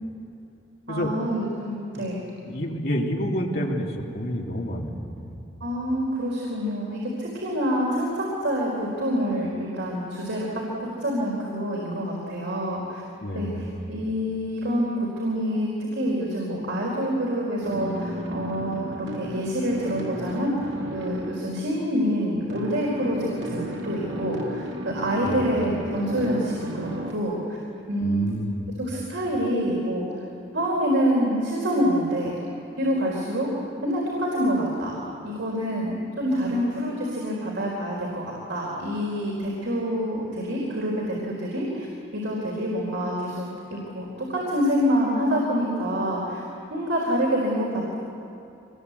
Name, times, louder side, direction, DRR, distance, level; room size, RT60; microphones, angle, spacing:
voice 1, 0.9-2.2 5.6-13.0 13.3-27.6 27.9-28.3 28.8-30.1 30.5-32.3 32.8-33.5 33.8-35.0 35.2-41.9 42.1-46.4 46.7-47.9, equal, 85° right, -4 dB, 4.3 m, -26 dB
voice 2, 2.4-5.3 13.2-13.7 25.2-25.6 28.0-28.6, equal, 55° left, -1 dB, 3.0 m, -29 dB
sound 1, 17.6-21.5 22.5-27.1, right 1 dB, 65° right, 2.6 m, -34 dB
25.0 x 20.5 x 8.3 m, 2.8 s
head